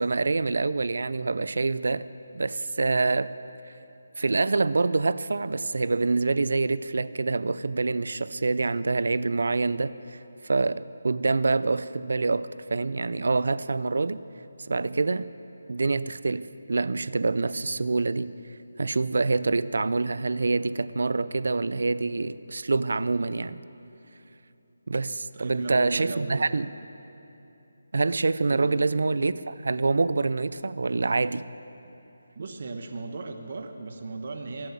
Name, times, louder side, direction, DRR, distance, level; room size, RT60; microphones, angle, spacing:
voice 1, 0.0-2.1 2.3-3.3 4.2-14.2 14.7-15.3 15.7-16.4 16.7-18.3 18.8-23.6 24.9-26.7 27.9-31.5, right 3 dB, 70° right, 16 dB, 0.5 m, -26 dB
voice 2, 25.3-26.5 28.5-28.7 32.3-34.7, right 3 dB, 50° right, 5 dB, 1.1 m, -36 dB
21.0 x 7.8 x 7.2 m, 2.9 s
figure-of-eight pair, 165°, 0 cm